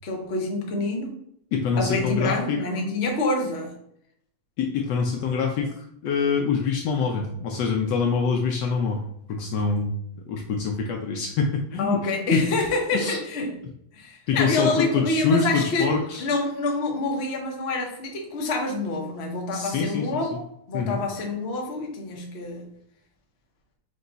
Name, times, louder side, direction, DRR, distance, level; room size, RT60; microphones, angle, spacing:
voice 1, 0.0-1.1 1.8-3.7 11.8-13.6 13.9-15.9 16.2-22.7, left 2 dB, 65° left, 1 dB, 0.6 m, -27 dB
voice 2, 1.5-2.6 4.6-9.0 9.3-9.9 10.3-12.0 12.3-12.4 12.9-13.2 14.3-16.3 19.5-20.1 20.7-21.0, left 5 dB, 85° left, 1 dB, 0.9 m, -25 dB
5.0 x 2.2 x 3.8 m, 0.71 s
omnidirectional pair, 2.4 m